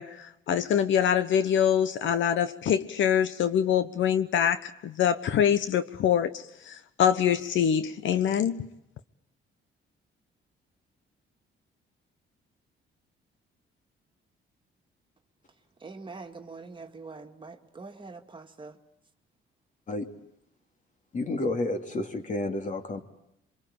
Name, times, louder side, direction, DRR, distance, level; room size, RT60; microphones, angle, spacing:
voice 1, 0.0-8.7, left 9 dB, 75° left, 1.2 m, -25 dB
voice 2, 15.8-18.8, right 4 dB, 25° right, 2.2 m, -44 dB
voice 3, 21.1-23.0, left 2 dB, 40° left, 2.9 m, -30 dB
27.5 x 24.5 x 8.9 m
cardioid pair, 115°, 20 cm